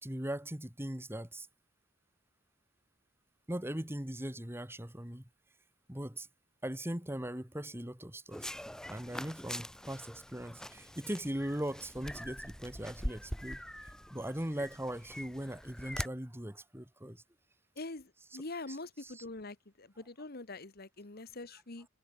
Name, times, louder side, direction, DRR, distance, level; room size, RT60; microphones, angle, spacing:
voice 1, 0.0-1.5 3.5-5.3 5.9-6.3 6.6-8.5 8.9-13.6 14.1-17.2 18.3-18.4 18.7-18.8 19.0-19.2, right 1 dB, 10° right, 3.0 m, -39 dB
sound 1, 8.3-16.1, equal, 5° left, 4.6 m, -43 dB
voice 2, 17.8-21.9, left 2 dB, 55° left, 1.5 m, -44 dB
head